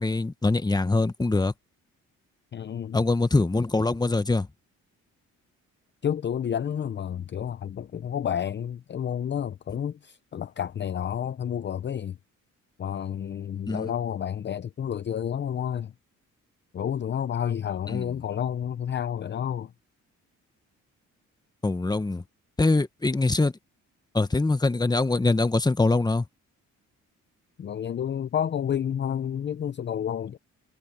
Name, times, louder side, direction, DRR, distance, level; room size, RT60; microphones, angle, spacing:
voice 1, 0.0-1.5 2.9-4.5 13.7-13.9 17.9-18.1 21.6-22.2 22.6-23.5 24.1-26.3, left 3 dB, 15° left, 1.2 m, -23 dB
voice 2, 2.5-3.0 6.0-12.2 12.8-15.9 16.7-19.7 27.6-30.4, left 9 dB, 35° left, 0.6 m, -30 dB
cardioid pair, 100°, 30 cm